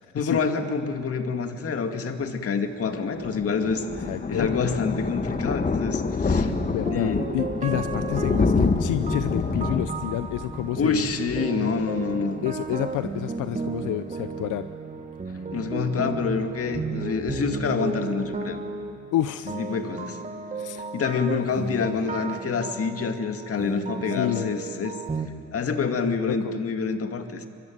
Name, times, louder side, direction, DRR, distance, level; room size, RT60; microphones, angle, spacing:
voice 1, 0.1-6.5 6.9-7.3 10.8-12.4 15.5-18.6 19.5-20.2 20.9-25.0 25.5-27.5, left 5 dB, 50° left, 6 dB, 2.3 m, -27 dB
Thunder, 2.9-12.3 12.6-12.8 13.1-13.2 13.4-13.5, left 4 dB, 25° left, 1.4 m, -27 dB
voice 2, 4.1-4.5 6.6-11.1 12.4-14.7 19.1-19.6 20.5-20.9 21.9-22.1 24.2-24.5 26.1-26.6, left 14 dB, 85° left, 12 dB, 0.7 m, -29 dB
sound 1, 6.3-25.3, right 4 dB, 25° right, 1.9 m, -34 dB
23.5 x 23.0 x 9.4 m, 2.3 s
cardioid pair, 90°, 30 cm